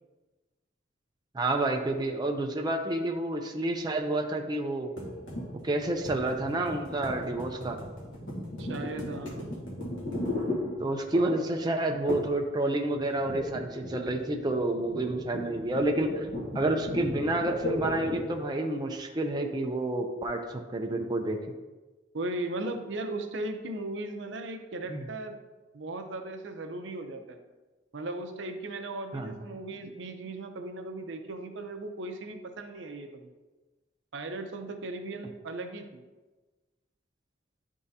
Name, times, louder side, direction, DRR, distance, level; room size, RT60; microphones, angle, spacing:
voice 1, 1.3-4.9 5.6-7.8 10.8-16.3 16.5-21.4 24.9-25.0 29.1-29.3, right 2 dB, 20° right, 3 dB, 0.4 m, -29 dB
sound 1, 5.0-11.3 12.1-12.5 12.7-18.4, left 1 dB, 90° left, 1.3 m, -36 dB
voice 2, 8.6-9.4 10.3-10.4 11.1-11.3 22.1-25.4 25.7-27.4 27.9-33.2 34.1-36.0, right 2 dB, 70° right, 6 dB, 0.6 m, -37 dB
10.5 x 3.6 x 2.7 m, 1.2 s
head